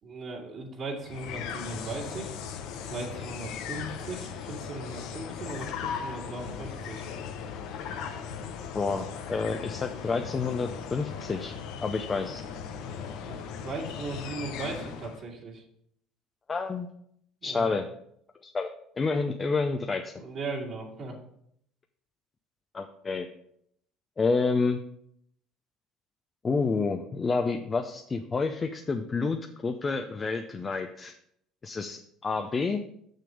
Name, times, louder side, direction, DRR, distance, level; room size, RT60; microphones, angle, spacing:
voice 1, 0.0-2.3 2.9-7.0 13.2-15.6 17.4-17.8 20.2-21.2, right 3 dB, 55° right, -2 dB, 2.2 m, -38 dB
sound 1, 1.0-15.3, left 7 dB, 70° left, 0.8 m, -38 dB
voice 2, 8.7-11.5 11.8-12.4 16.5-16.9 17.4-17.9 18.4-18.7 19.0-20.1 22.7-23.3 24.2-24.8 26.4-31.1 31.6-32.8, left 4 dB, 30° left, 5 dB, 0.7 m, -29 dB
6.9 x 6.5 x 5.0 m, 0.70 s
hypercardioid pair, 65°, 0 cm